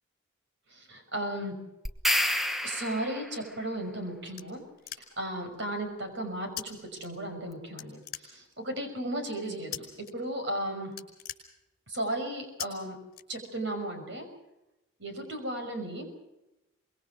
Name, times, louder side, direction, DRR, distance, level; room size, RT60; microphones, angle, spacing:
voice 1, 0.7-1.5 2.6-4.6 5.2-10.9 11.9-13.0 13.3-14.3 15.0-16.1, right 1 dB, 55° right, 6 dB, 5.8 m, -35 dB
sound 1, 1.9-3.4, left 1 dB, ahead, 1.1 m, -29 dB
sound 2, 3.7-5.4 6.6-6.7 7.0-7.5 7.8-8.7 9.7-10.1 10.4-10.6 10.9-12.0 12.6-12.7 13.1-13.8, left 11 dB, 45° left, 5.0 m, -41 dB
24.5 x 21.5 x 6.3 m, 0.94 s
head